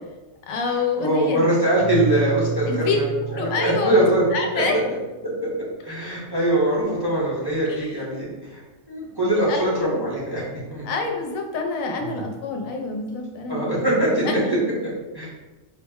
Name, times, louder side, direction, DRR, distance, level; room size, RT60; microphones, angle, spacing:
voice 1, 0.5-1.4 2.7-3.0 3.3-4.8 7.7-8.0 9.5-10.0 10.8-13.7 14.2-14.4, left 4 dB, 80° left, 3 dB, 1.0 m, -27 dB
voice 2, 1.0-3.0 3.3-4.2 4.5-4.6 5.4-5.5 5.8-8.6 8.9-10.4 10.7-10.9 12.0-12.2 13.5-14.4 15.1-15.3, right 1 dB, 20° right, -7 dB, 0.7 m, -22 dB
Keyboard (musical), 1.8-4.9, right 5 dB, 20° left, 0.4 m, -31 dB
4.5 x 2.0 x 3.5 m, 1.2 s
omnidirectional pair, 1.4 m